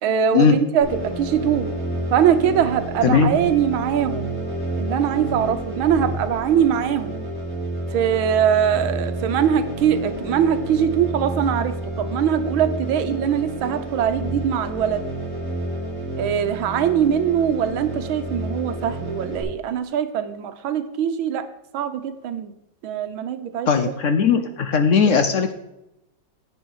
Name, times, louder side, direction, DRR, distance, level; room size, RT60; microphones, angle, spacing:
voice 1, 0.0-1.7 2.1-4.3 4.8-7.2 7.9-15.0 16.2-21.5 21.7-22.5 22.8-23.8, right 9 dB, 85° right, 10 dB, 1.6 m, -22 dB
sound 1, 0.8-19.4, right 1 dB, 45° left, 5.1 m, -30 dB
voice 2, 23.7-25.5, left 6 dB, 65° left, 8 dB, 0.8 m, -18 dB
10.5 x 8.2 x 4.7 m, 0.87 s
omnidirectional pair, 2.2 m